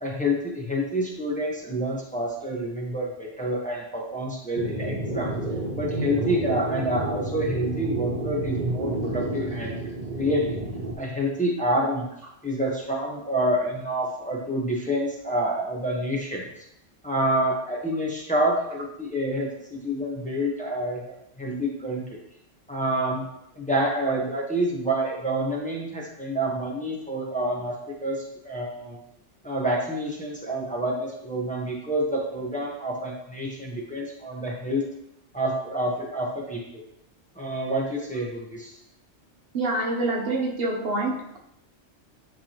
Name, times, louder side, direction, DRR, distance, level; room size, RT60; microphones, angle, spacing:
voice 1, 0.0-5.3 5.8-9.8 10.2-10.6 11.0-12.1 12.4-16.5 17.0-22.2 22.7-23.2 23.5-29.0 29.4-34.8 35.3-36.8 37.4-38.7, right 1 dB, 5° left, -3 dB, 1.1 m, -28 dB
sound 1, 4.6-10.9, right 2 dB, 40° right, 1.3 m, -30 dB
voice 2, 39.5-41.4, right 2 dB, 60° right, 0 dB, 1.0 m, -26 dB
10.5 x 3.6 x 2.9 m, 0.79 s
omnidirectional pair, 1.2 m